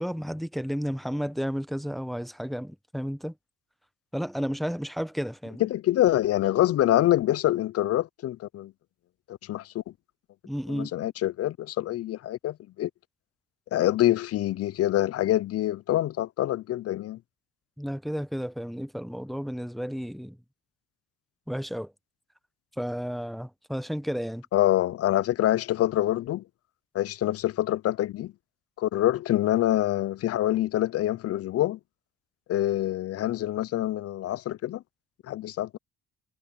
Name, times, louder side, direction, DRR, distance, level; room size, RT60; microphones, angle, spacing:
voice 1, 0.0-3.3 4.1-5.7 10.4-10.9 17.8-20.4 21.5-21.9 22.8-24.4, equal, ahead, 1.0 m, -32 dB
voice 2, 5.6-8.7 9.3-9.8 10.7-12.9 13.7-17.2 24.5-26.4 26.9-28.3 28.8-31.8 32.5-34.8 35.3-35.8, left 14 dB, 50° left, 0.4 m, -25 dB
cardioid pair, 105°, 31 cm